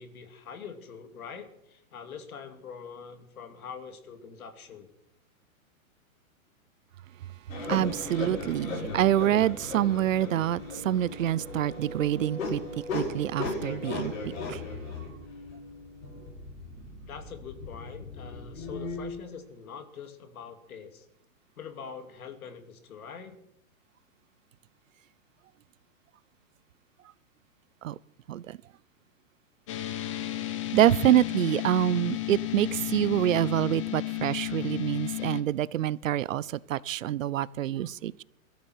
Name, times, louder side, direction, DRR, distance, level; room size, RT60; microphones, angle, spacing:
voice 1, 0.0-4.9 17.0-21.1 21.6-23.4, left 6 dB, 85° left, 2.6 m, -44 dB
sound 1, 7.5-19.1, left 3 dB, 65° left, 6.8 m, -37 dB
voice 2, 7.7-12.6 12.9-14.6 27.8-28.0 28.3-28.6 30.7-38.2, right 12 dB, 65° right, 0.7 m, -26 dB
sound 2, 29.7-35.4, left 16 dB, 20° left, 0.7 m, -33 dB
22.5 x 13.5 x 4.6 m
hypercardioid pair, 175°, 42 cm